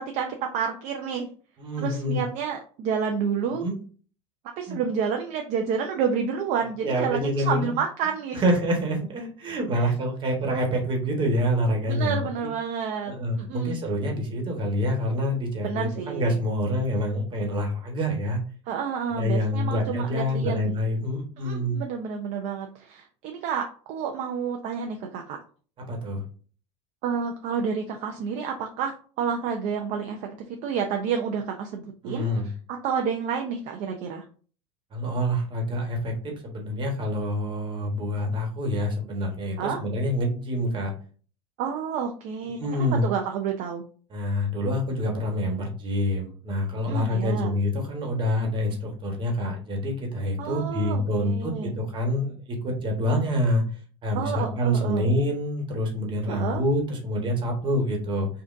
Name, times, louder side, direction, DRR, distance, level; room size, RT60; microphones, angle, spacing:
voice 1, 0.5-1.3 1.8-3.6 4.6-8.4 9.8-9.9 11.9-13.8 15.6-16.3 18.7-20.7 21.4-25.4 27.0-28.9 29.2-32.3 32.8-34.2 39.6-39.8 41.6-43.8 46.9-47.5 50.4-51.7 54.1-55.1 56.3-56.6, right 6 dB, 55° right, 3 dB, 0.6 m, -29 dB
voice 2, 1.6-2.2 3.5-3.7 4.7-4.8 6.8-7.7 8.3-12.5 13.1-18.4 19.1-21.8 25.9-26.2 32.0-32.5 34.9-40.9 42.6-43.1 44.1-53.6 54.0-58.3, equal, 35° right, 1 dB, 1.3 m, -26 dB
5.1 x 2.5 x 2.6 m, 0.41 s
supercardioid pair, 120°, 15 cm